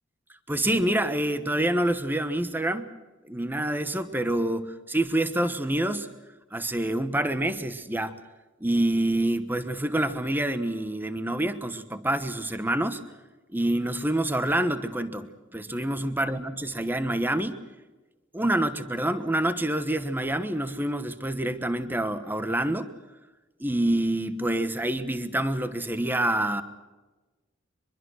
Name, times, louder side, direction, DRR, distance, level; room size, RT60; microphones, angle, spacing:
voice 1, 0.5-2.9 3.2-6.1 6.5-8.2 8.6-13.0 13.5-17.6 18.3-22.9 23.6-26.6, right 1 dB, 10° right, 10 dB, 1.1 m, -27 dB
24.5 x 23.0 x 6.4 m, 1.2 s
head